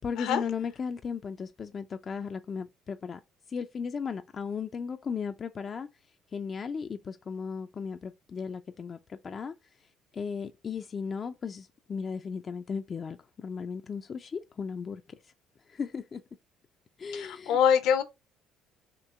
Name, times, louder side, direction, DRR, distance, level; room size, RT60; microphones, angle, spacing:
voice 1, 0.0-3.2 3.5-5.9 6.3-9.5 9.8-15.3 15.7-16.2 17.0-17.6, left 6 dB, 40° left, 0.4 m, -36 dB
voice 2, 17.1-18.0, left 8 dB, 70° left, 0.8 m, -24 dB
4.5 x 2.9 x 3.6 m
supercardioid pair, 70°, 0 cm